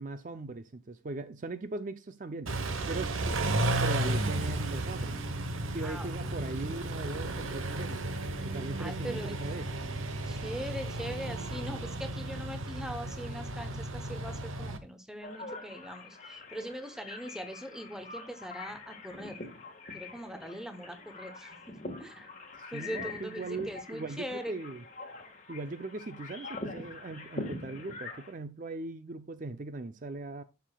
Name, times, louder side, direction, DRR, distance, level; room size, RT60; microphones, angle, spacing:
voice 1, 0.0-2.5 2.9-5.2 5.7-8.0 8.4-9.7 22.6-24.8 25.5-30.4, right 3 dB, 40° right, 0.4 m, -39 dB
Car / Idling / Accelerating revving vroom, 2.5-14.8, right 2 dB, 85° right, 1.0 m, -33 dB
voice 2, 8.8-9.4 10.3-19.4 19.9-22.3 22.7-24.5, equal, 5° right, 0.8 m, -41 dB
sound 1, 15.2-28.3, left 3 dB, 35° left, 1.5 m, -44 dB
13.0 x 5.8 x 2.3 m
head